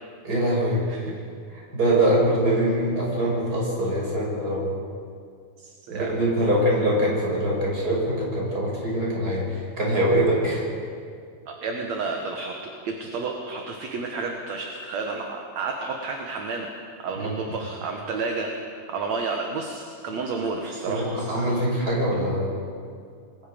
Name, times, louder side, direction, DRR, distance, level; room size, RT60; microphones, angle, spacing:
voice 1, 0.2-0.8 1.5-4.7 5.9-10.7 17.2-17.3 20.9-22.5, right 1 dB, 30° right, -3 dB, 6.5 m, -23 dB
voice 2, 5.6-6.1 11.5-16.7 17.0-18.5 18.9-21.4 21.8-21.9, right 4 dB, 65° right, 2 dB, 2.6 m, -31 dB
28.0 x 21.0 x 5.2 m, 2.2 s
omnidirectional pair, 3.5 m